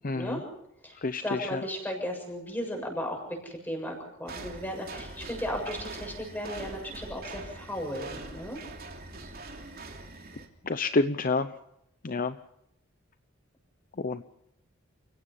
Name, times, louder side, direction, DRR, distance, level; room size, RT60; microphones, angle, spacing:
voice 1, 0.0-0.4 1.0-1.6 10.7-11.5 12.0-12.3 14.0-14.2, left 3 dB, 40° left, 11 dB, 0.7 m, -28 dB
voice 2, 1.2-3.2 3.4-8.6, equal, 10° left, 2 dB, 7.1 m, -35 dB
sound 1, 4.3-10.5, right 2 dB, 45° right, 3.2 m, -43 dB
29.0 x 17.0 x 5.7 m, 0.80 s
head